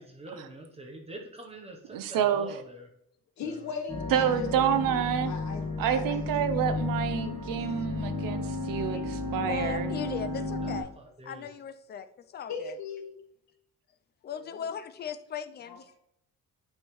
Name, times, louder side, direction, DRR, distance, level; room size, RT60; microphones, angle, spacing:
voice 1, 0.0-2.9 3.4-3.5 10.6-10.7 11.2-11.5, right 2 dB, 15° right, 2 dB, 0.7 m, -45 dB
voice 2, 1.9-2.6 4.1-5.3 5.8-9.9, right 9 dB, 70° right, 11 dB, 0.6 m, -28 dB
voice 3, 3.4-4.9 5.2-6.7 8.9-9.0 10.5-10.6 12.5-13.1 14.3-14.7 15.6-15.8, left 5 dB, 55° left, 3 dB, 1.4 m, -39 dB
sound 1, 3.9-10.8, left 3 dB, 15° left, 1.9 m, -33 dB
voice 4, 9.4-10.9 11.2-12.1 12.3-12.7 14.2-16.0, left 7 dB, 30° left, 10 dB, 0.4 m, -37 dB
8.8 x 5.4 x 3.1 m, 0.76 s
cardioid pair, 180°, 34 cm